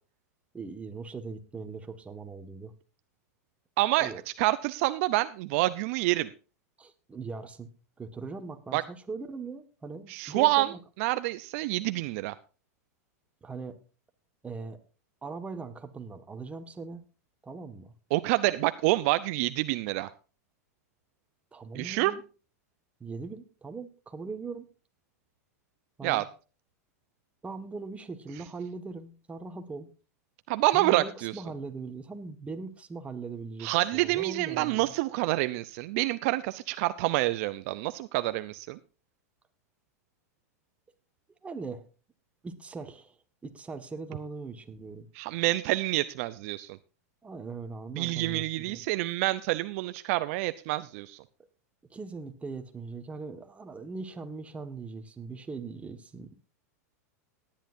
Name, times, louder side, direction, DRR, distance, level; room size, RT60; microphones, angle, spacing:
voice 1, 0.5-2.7 4.0-4.2 6.8-7.7 8.0-10.8 13.4-13.8 14.4-14.8 15.2-17.0 17.4-17.9 21.5-22.2 23.0-24.7 26.0-26.3 27.4-29.9 30.7-34.9 41.4-41.8 42.4-45.1 47.2-48.8 51.9-56.5, right 4 dB, 15° right, 7 dB, 1.7 m, -40 dB
voice 2, 3.8-4.1 4.4-6.3 8.7-8.8 10.1-10.7 11.0-12.3 18.1-20.1 21.7-22.1 26.0-26.2 30.5-31.3 33.6-38.8 45.2-46.8 48.0-51.2, right 18 dB, 55° right, 13 dB, 0.6 m, -27 dB
18.5 x 10.5 x 2.6 m, 0.34 s
hypercardioid pair, 110°, 9 cm